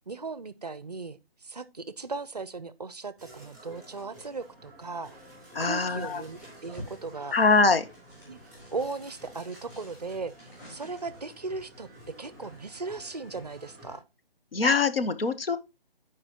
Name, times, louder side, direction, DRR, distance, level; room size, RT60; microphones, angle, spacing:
voice 1, 0.1-5.2 5.6-7.4 8.3-8.4 8.7-11.9 12.2-14.0, right 3 dB, 45° right, 0.5 m, -37 dB
sound 1, 3.2-14.0, right 1 dB, ahead, 2.8 m, -51 dB
voice 2, 5.5-6.2 7.3-7.8 14.5-15.6, left 4 dB, 70° left, 1.0 m, -23 dB
sound 2, 5.7-11.4, equal, 20° left, 4.6 m, -50 dB
13.5 x 4.9 x 2.8 m
hypercardioid pair, 175°, 30 cm